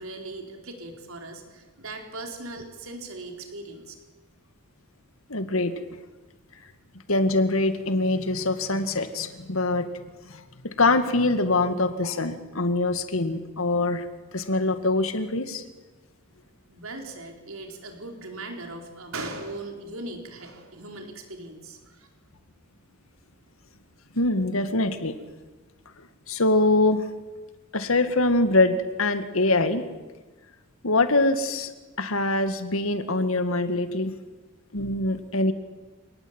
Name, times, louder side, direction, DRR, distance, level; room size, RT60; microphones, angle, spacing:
voice 1, 0.0-3.9 16.7-22.1, right 2 dB, 85° right, 3 dB, 4.5 m, -39 dB
voice 2, 5.3-5.7 7.1-14.1 14.3-15.6 24.1-25.1 26.3-27.1 27.7-29.8 30.8-31.7 32.0-34.2 34.7-35.5, left 2 dB, 80° left, 9 dB, 2.1 m, -24 dB
27.0 x 19.0 x 9.0 m, 1.2 s
head